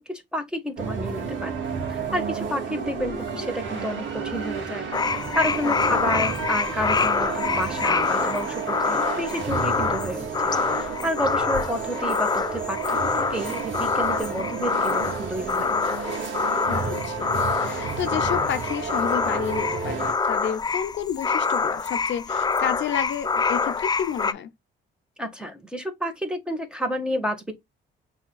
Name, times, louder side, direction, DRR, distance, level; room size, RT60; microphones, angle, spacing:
voice 1, 0.0-1.5 1.9-15.8 25.2-27.5, equal, 5° right, 1.5 m, -30 dB
sound 1, 0.8-20.1, right 5 dB, 70° right, 2.1 m, -31 dB
sound 2, 4.9-24.3, left 4 dB, 20° left, 0.4 m, -26 dB
voice 2, 5.6-6.0 16.7-17.3 17.6-24.5, left 9 dB, 70° left, 0.7 m, -31 dB
6.1 x 3.6 x 2.3 m
cardioid pair, 90°, 20 cm